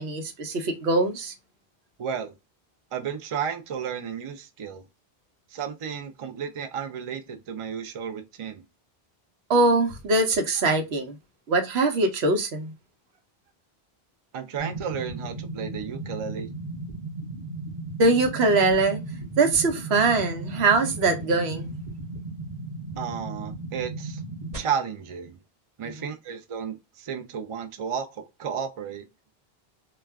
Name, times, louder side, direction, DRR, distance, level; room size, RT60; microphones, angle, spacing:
voice 1, 0.0-1.3 9.5-11.2 11.5-12.7 18.0-19.0 19.4-21.8, right 3 dB, 85° right, 0.9 m, -22 dB
voice 2, 2.0-2.3 2.9-4.8 5.5-8.6 14.3-16.5 23.0-24.2 24.5-25.4 25.8-29.0, right 7 dB, 50° right, 0.3 m, -33 dB
sound 1, 14.6-24.6, right 2 dB, 35° right, 1.0 m, -36 dB
2.3 x 2.2 x 3.3 m
omnidirectional pair, 1.0 m